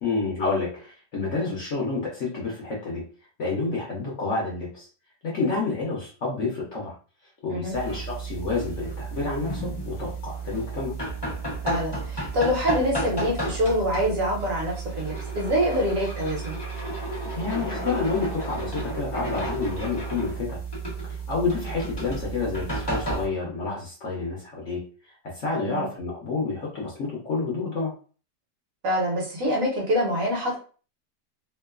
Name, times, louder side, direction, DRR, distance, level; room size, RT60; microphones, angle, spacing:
voice 1, 0.0-3.0 3.4-4.9 5.2-6.9 7.4-11.0 17.3-20.6 21.0-24.8 25.3-27.9, left 4 dB, 55° left, -4 dB, 0.9 m, -29 dB
sound 1, 7.7-23.3, right 2 dB, 40° left, 0.3 m, -32 dB
voice 2, 11.6-16.6 25.5-25.9 28.8-30.6, equal, 60° right, -3 dB, 1.2 m, -25 dB
2.9 x 2.1 x 2.3 m, 0.39 s
omnidirectional pair, 1.8 m